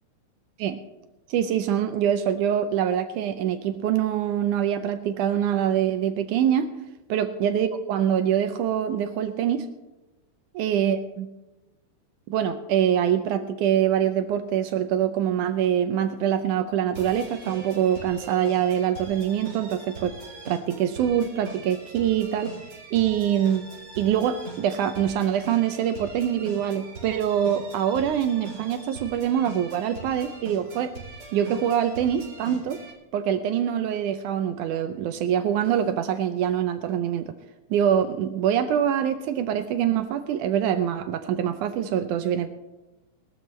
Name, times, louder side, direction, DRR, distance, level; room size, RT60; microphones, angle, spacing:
voice 1, 1.3-6.7 7.1-9.7 10.5-11.3 12.3-20.2 20.5-22.5 22.9-23.6 24.0-30.9 31.3-32.8 33.1-37.4 37.7-42.5, right 9 dB, 75° right, 9 dB, 2.0 m, -24 dB
sound 1, 16.9-32.9, right 3 dB, 45° right, 4.9 m, -42 dB
20.5 x 13.5 x 3.3 m, 1.0 s
omnidirectional pair, 3.8 m